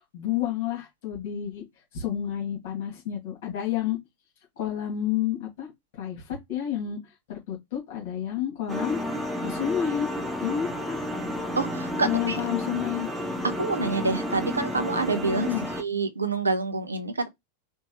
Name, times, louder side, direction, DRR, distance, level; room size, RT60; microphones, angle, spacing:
voice 1, 0.0-1.6 1.9-4.0 4.6-9.0 9.4-10.1 10.4-11.0 12.0-13.1 15.4-15.7, left 10 dB, 50° left, 2.3 m, -30 dB
sound 1, 8.7-15.8, left 1 dB, 10° right, 0.7 m, -31 dB
voice 2, 11.6-12.4 13.6-15.5 15.8-17.3, right 3 dB, 80° right, 0.6 m, -27 dB
4.5 x 2.6 x 3.0 m
figure-of-eight pair, 90°, 0 cm